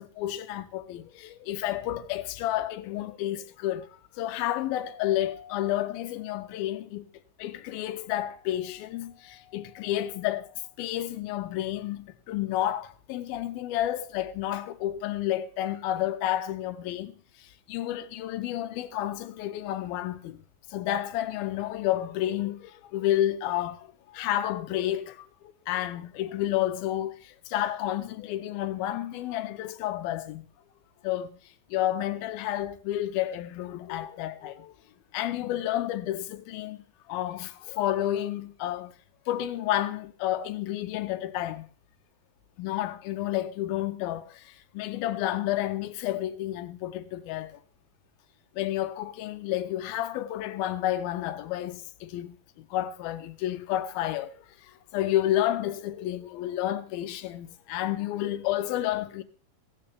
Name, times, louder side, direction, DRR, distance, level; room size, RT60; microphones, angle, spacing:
voice 1, 0.0-7.1 7.4-20.4 20.7-25.3 25.7-30.5 31.0-31.4 31.7-34.7 35.1-36.8 37.1-38.9 39.3-41.7 42.6-47.6 48.6-54.4 54.6-59.2, left 13 dB, 80° left, 2.5 m, -30 dB
15.5 x 15.5 x 3.4 m
omnidirectional pair, 4.5 m